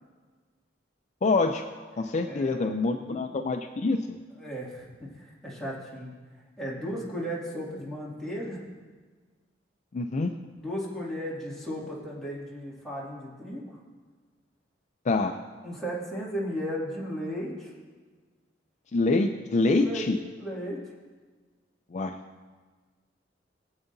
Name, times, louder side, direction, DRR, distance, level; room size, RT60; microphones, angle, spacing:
voice 1, 1.2-1.6 2.0-4.2 9.9-10.3 15.1-15.4 18.9-20.2 21.9-22.2, left 3 dB, 40° left, 6 dB, 0.4 m, -26 dB
voice 2, 2.2-3.2 4.3-6.1 6.6-8.6 10.6-13.8 15.6-17.7 19.8-20.1 20.4-20.8, equal, 5° left, -6 dB, 2.3 m, -35 dB
20.5 x 7.9 x 2.7 m, 1.4 s
head